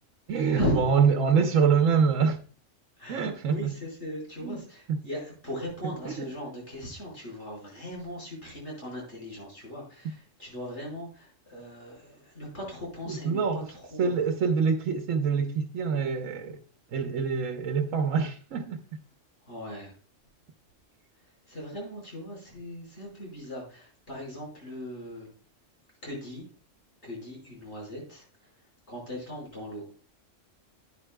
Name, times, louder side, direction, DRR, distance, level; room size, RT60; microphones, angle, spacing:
voice 1, 0.3-2.4 3.1-3.7 4.4-4.6 4.9-5.0 5.8-6.3 13.1-13.7 14.0-16.6 16.9-18.8, right 6 dB, 85° right, 1.1 m, -25 dB
voice 2, 3.0-14.2 19.5-19.9 21.5-25.3 26.0-26.5 27.0-28.3 28.9-29.9, equal, 60° left, 5.5 m, -38 dB
11.0 x 10.0 x 2.2 m
omnidirectional pair, 1.3 m